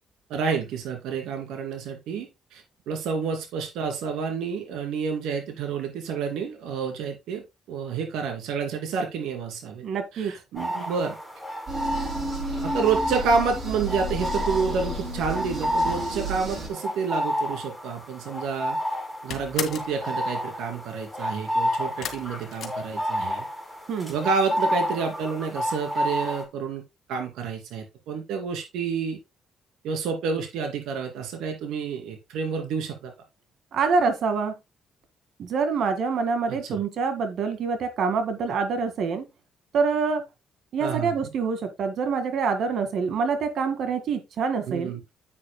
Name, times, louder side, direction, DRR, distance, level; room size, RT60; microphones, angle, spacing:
voice 1, 0.3-9.8 10.1-11.2 12.6-18.8 19.2-23.5 24.1-26.8 27.1-29.2 29.8-33.1 36.5-36.8 40.8-41.1 44.7-45.0, right 5 dB, 90° right, 2.8 m, -29 dB
voice 2, 9.8-10.3 23.9-24.1 33.7-34.5 35.4-39.3 39.7-40.2 40.7-44.9, right 5 dB, 70° right, 2.0 m, -26 dB
sound 1, 10.6-26.4, equal, ahead, 4.2 m, -30 dB
sound 2, 11.7-16.7, right 1 dB, 45° right, 5.9 m, -32 dB
sound 3, 18.3-18.7 18.9-20.0 22.0-23.5 23.8-24.4 24.7-24.8 25.1-25.2, left 8 dB, 65° left, 2.0 m, -36 dB
10.0 x 8.7 x 2.2 m
cardioid pair, 90°, 0 cm